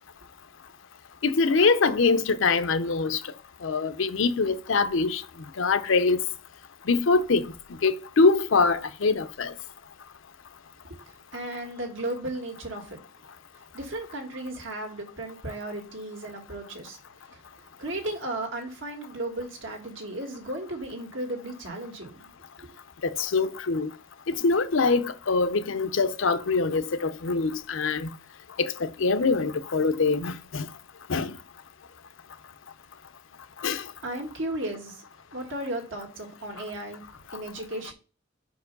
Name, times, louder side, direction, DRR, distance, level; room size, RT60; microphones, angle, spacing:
voice 1, 1.2-3.2 3.6-5.2 5.6-6.2 6.9-7.5 7.8-9.5 23.0-23.9 24.3-28.1 28.6-30.7 31.1-31.3 33.6-33.8, left 4 dB, 85° left, 0.6 m, -24 dB
voice 2, 11.3-13.0 13.5-17.0 17.3-22.3 22.6-22.7 34.0-35.0 35.3-37.0 37.3-37.9, right 1 dB, 75° right, 1.8 m, -35 dB
5.3 x 4.7 x 5.3 m
head